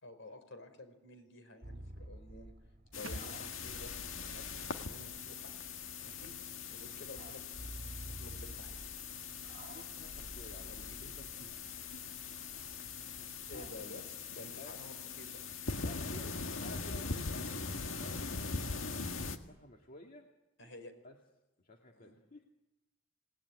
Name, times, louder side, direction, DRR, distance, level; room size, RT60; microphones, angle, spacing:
voice 1, 0.0-2.5 2.9-5.5 6.0-6.3 6.7-7.4 8.2-8.8 10.6-11.1 13.5-14.0 14.3-15.4 16.7-17.2 20.6-20.9 22.0-22.2, left 1 dB, 70° left, 8 dB, 5.0 m, -52 dB
sound 1, 1.6-13.9, right 1 dB, 45° right, 1.7 m, -52 dB
sound 2, 2.9-19.4, left 4 dB, 85° left, 1.9 m, -42 dB
sound 3, 3.0-6.6 6.8-6.9, right 2 dB, 85° right, 1.2 m, -53 dB
voice 2, 9.7-12.2 13.0-13.7 14.6-14.8 15.8-18.5 19.1-20.3 21.0-21.2 21.6-22.5, left 1 dB, 45° left, 2 dB, 2.0 m, -54 dB
27.5 x 19.5 x 9.7 m, 0.99 s
head